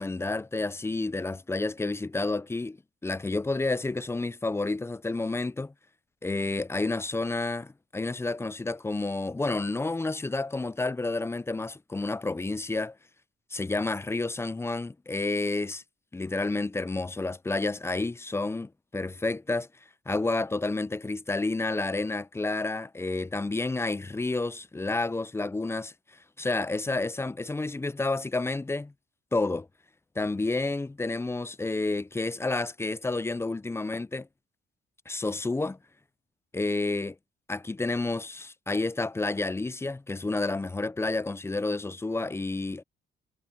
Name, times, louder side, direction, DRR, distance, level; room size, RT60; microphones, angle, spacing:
voice 1, 0.0-5.7 6.2-13.0 13.5-15.8 16.1-19.7 20.1-25.9 26.4-28.9 29.3-29.7 30.2-34.3 35.1-35.8 36.5-37.2 37.5-42.8, left 3 dB, 15° left, 0.5 m, -30 dB
cardioid pair, 90°, 20 cm